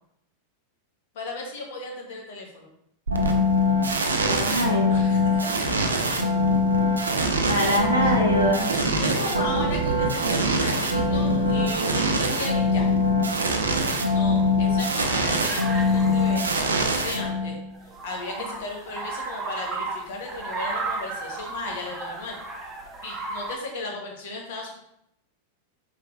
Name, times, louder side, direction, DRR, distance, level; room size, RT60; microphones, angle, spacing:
voice 1, 1.1-2.7 4.9-5.6 7.5-8.1 8.7-12.9 14.1-16.5 17.0-22.4 23.0-24.8, left 2 dB, 55° left, 0 dB, 1.0 m, -36 dB
sound 1, 3.1-17.7, left 1 dB, 75° right, 0.5 m, -23 dB
voice 2, 4.2-5.0 7.4-8.7, equal, 85° left, -2 dB, 1.1 m, -24 dB
sound 2, 15.4-17.1 17.8-23.6, right 3 dB, 20° right, 0.7 m, -34 dB
4.7 x 3.4 x 2.3 m, 0.76 s
figure-of-eight pair, 90°, 0 cm